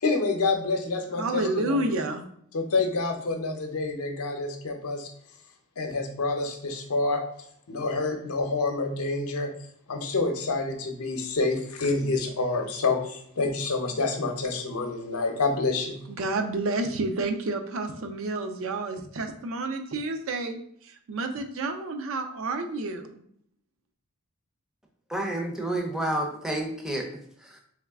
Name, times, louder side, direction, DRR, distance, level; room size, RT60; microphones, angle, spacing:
voice 1, 0.0-1.8 2.5-5.1 5.8-7.2 7.7-9.5 9.9-16.0, left 3 dB, 75° left, 4 dB, 0.7 m, -27 dB
voice 2, 1.2-2.2 16.1-23.2, right 2 dB, 60° right, 5 dB, 0.5 m, -30 dB
voice 3, 25.1-27.1 27.4-27.6, right 1 dB, ahead, 1 dB, 0.5 m, -29 dB
3.5 x 3.1 x 3.5 m, 0.68 s
head